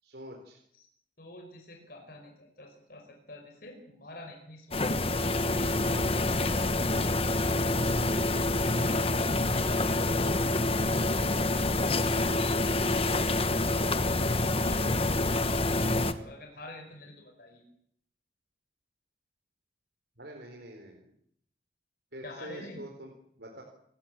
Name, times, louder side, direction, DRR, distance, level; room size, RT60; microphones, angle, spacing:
voice 1, 0.0-0.6 20.2-21.1 22.1-23.6, right 1 dB, 60° right, 1 dB, 4.4 m, -45 dB
voice 2, 1.2-5.9 14.5-17.6 22.2-22.8, left 1 dB, 50° left, 3 dB, 5.3 m, -49 dB
sound 1, 4.7-16.1, left 2 dB, 30° left, 1.3 m, -27 dB
28.0 x 16.0 x 9.0 m, 0.70 s
head